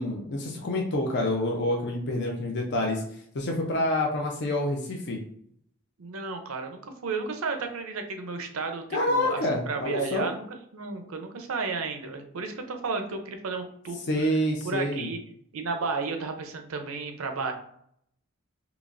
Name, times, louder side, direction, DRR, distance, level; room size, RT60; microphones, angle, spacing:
voice 1, 0.0-3.0 3.3-5.2 8.9-10.3 14.1-15.1, left 1 dB, 55° left, 0 dB, 0.5 m, -27 dB
voice 2, 6.0-10.4 10.7-14.0 14.6-15.2 15.5-17.5, right 4 dB, 75° right, 6 dB, 0.6 m, -33 dB
3.9 x 2.9 x 2.5 m, 0.68 s
head